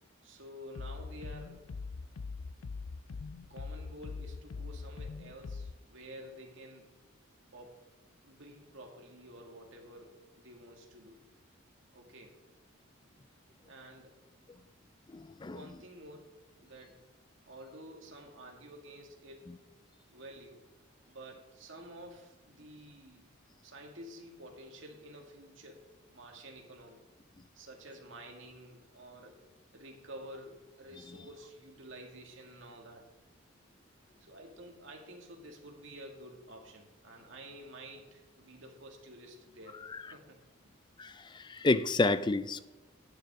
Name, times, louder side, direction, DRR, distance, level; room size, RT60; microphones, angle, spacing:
voice 1, 0.2-1.6 3.5-6.9 7.5-7.8 8.2-11.2 11.9-12.4 13.7-14.2 15.5-17.0 17.5-19.6 20.1-20.6 21.1-23.3 23.6-27.0 27.5-29.4 29.7-33.0 34.2-39.9 40.1-40.4, right 1 dB, 60° right, 2.3 m, -50 dB
sound 1, 0.7-5.7, left 4 dB, 80° left, 0.5 m, -42 dB
voice 2, 15.1-15.6 41.0-42.6, left 2 dB, 20° left, 0.4 m, -29 dB
11.5 x 9.6 x 3.7 m
head